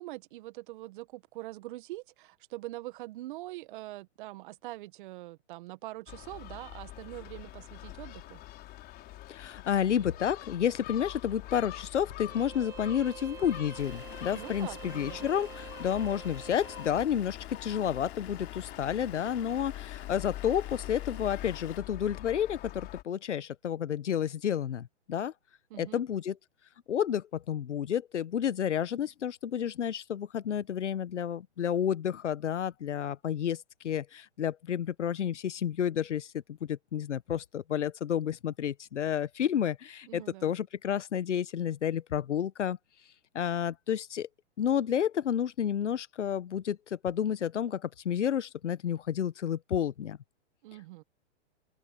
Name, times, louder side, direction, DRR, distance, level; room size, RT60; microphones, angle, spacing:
voice 1, 0.0-8.4 14.3-15.3 25.7-26.0 40.1-40.5 50.6-51.0, right 18 dB, 45° right, 1.6 m, -43 dB
Gull seagull, 6.1-23.0, left 16 dB, 25° left, 4.7 m, -44 dB
voice 2, 9.3-25.3 25.8-26.4 26.9-42.8 43.3-44.3 44.6-50.2, left 9 dB, 85° left, 1.2 m, -31 dB
Bowed string instrument, 12.3-17.1, right 9 dB, 10° right, 0.5 m, -47 dB
Vehicle / Engine, 13.8-21.8, left 11 dB, 65° left, 3.8 m, -49 dB
hypercardioid pair, 135°, 35 cm